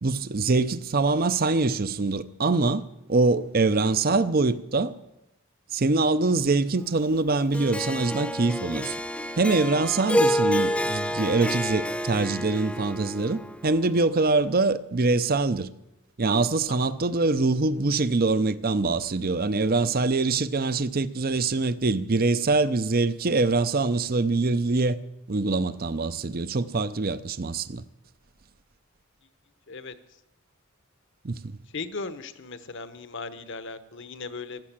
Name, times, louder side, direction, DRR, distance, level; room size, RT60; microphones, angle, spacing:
voice 1, 0.0-2.8 3.1-4.9 5.7-9.0 9.4-15.7 16.2-25.0 25.3-27.8 31.2-31.6, right 3 dB, 45° right, 0.7 m, -24 dB
Harp, 7.5-13.9, equal, 5° left, 0.5 m, -28 dB
voice 2, 31.7-34.6, left 4 dB, 60° left, 1.1 m, -37 dB
15.0 x 12.5 x 7.5 m
head